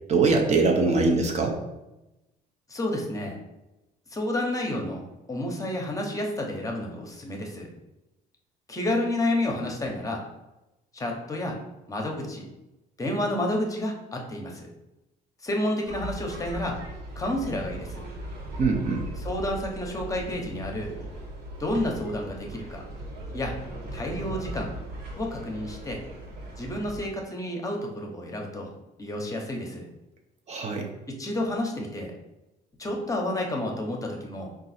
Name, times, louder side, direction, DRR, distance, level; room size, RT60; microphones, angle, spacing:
voice 1, 0.1-1.6 18.6-19.0 30.5-30.9, right 3 dB, 40° right, 2 dB, 0.6 m, -22 dB
voice 2, 2.7-3.4 4.1-7.7 8.7-10.2 10.9-11.6 11.9-12.5 13.0-14.7 15.4-16.8 17.2-18.1 19.2-20.9 21.6-22.8 23.3-23.6 23.9-24.7 25.2-26.0 26.6-28.7 29.0-29.9 31.1-32.1 32.8-34.5, left 1 dB, 20° left, 1 dB, 0.8 m, -30 dB
sound 1, 15.8-27.0, right 1 dB, 70° right, 1.2 m, -38 dB
3.8 x 2.5 x 4.1 m, 0.97 s
cardioid pair, 110°, 17 cm